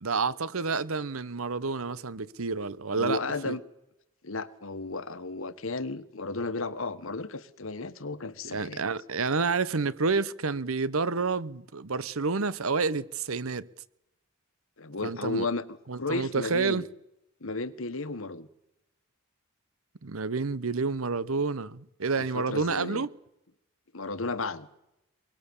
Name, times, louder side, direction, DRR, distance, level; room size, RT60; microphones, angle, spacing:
voice 1, 0.0-3.2 3.4-3.6 8.4-13.7 15.0-15.5 15.9-16.8 20.0-23.1, right 4 dB, 75° right, 0.9 m, -29 dB
voice 2, 2.9-3.6 4.2-8.8 14.8-16.8 17.4-18.5 22.2-23.1 23.9-24.7, left 3 dB, 70° left, 1.4 m, -34 dB
24.0 x 22.0 x 7.2 m
head